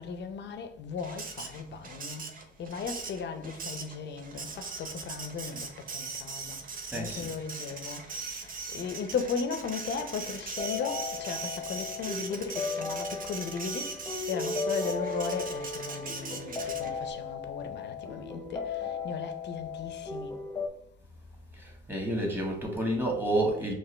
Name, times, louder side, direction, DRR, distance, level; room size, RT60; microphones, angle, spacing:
voice 1, 0.0-2.3 2.6-6.6 6.9-13.9 14.3-20.4, left 5 dB, 60° left, 0.7 m, -37 dB
Printer, 1.0-17.1, right 4 dB, 45° right, 0.8 m, -40 dB
voice 2, 6.9-7.3 21.5-23.7, right 1 dB, 10° right, 1.6 m, -30 dB
sound 1, 10.6-20.7, left 4 dB, 15° left, 0.9 m, -36 dB
6.0 x 2.5 x 3.3 m
cardioid pair, 90°, 20 cm